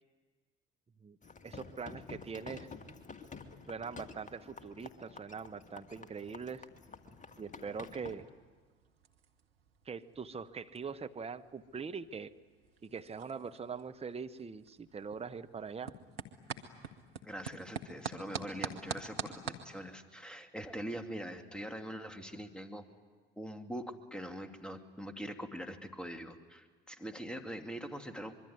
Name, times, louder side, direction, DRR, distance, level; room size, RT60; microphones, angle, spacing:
sound 1, 1.2-8.1, left 4 dB, 25° left, 2.2 m, -50 dB
voice 1, 1.4-2.7 3.7-6.7 7.4-8.3 9.8-12.3 12.8-15.9, right 5 dB, 20° right, 9 dB, 1.1 m, -42 dB
sound 2, 7.0-19.7, right 6 dB, 80° right, 1.6 m, -47 dB
voice 2, 17.2-22.8 23.4-28.4, equal, 5° left, 6 dB, 2.6 m, -43 dB
25.5 x 23.0 x 9.6 m, 1.4 s
figure-of-eight pair, 60°, 29 cm